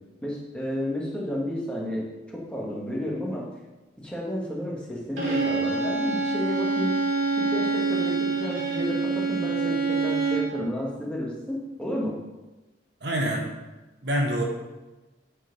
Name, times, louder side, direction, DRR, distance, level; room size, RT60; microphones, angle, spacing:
voice 1, 0.2-2.0 2.3-3.5 4.0-6.9 7.5-12.2, equal, 5° left, -4 dB, 1.7 m, -31 dB
Bowed string instrument, 5.2-10.6, right 4 dB, 80° right, 3.2 m, -26 dB
voice 2, 13.0-13.5 14.0-14.4, right 1 dB, 60° right, 1 dB, 1.3 m, -26 dB
9.6 x 4.6 x 5.3 m, 1.1 s
head